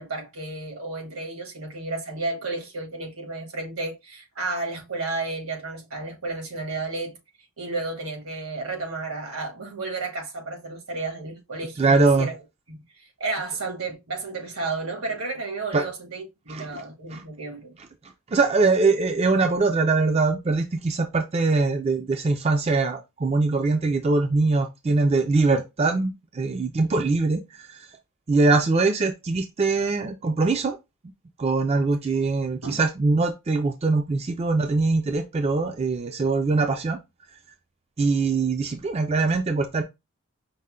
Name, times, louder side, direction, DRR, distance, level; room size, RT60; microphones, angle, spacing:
voice 1, 0.0-7.2 7.6-12.3 12.7-12.8 13.2-17.7 32.6-32.8, right 3 dB, 80° right, 1.5 m, -32 dB
voice 2, 11.8-12.3 15.7-15.9 16.5-16.8 17.1-17.2 18.3-27.9 28.3-30.8 31.4-37.0 38.0-39.8, right 3 dB, 30° right, 0.3 m, -22 dB
5.4 x 2.1 x 3.6 m
head